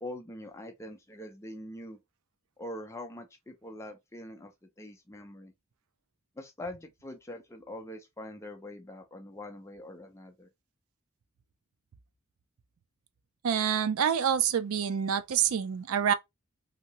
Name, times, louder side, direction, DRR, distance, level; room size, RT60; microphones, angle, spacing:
voice 1, 0.0-2.0 2.6-4.5 4.8-5.5 6.4-10.5, left 1 dB, 15° left, 0.4 m, -43 dB
voice 2, 13.4-16.1, right 8 dB, 80° right, 0.4 m, -27 dB
2.8 x 2.7 x 2.9 m
head